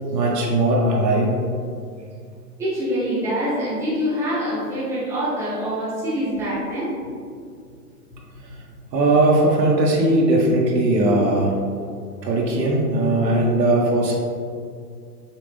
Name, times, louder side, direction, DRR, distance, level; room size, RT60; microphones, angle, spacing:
voice 1, 0.1-1.4 8.9-11.5 12.2-14.1, right 2 dB, 75° right, -2 dB, 1.2 m, -19 dB
voice 2, 2.6-6.9, equal, 5° right, -10 dB, 0.7 m, -25 dB
5.8 x 2.5 x 3.4 m, 2.2 s
hypercardioid pair, 140°, 50 cm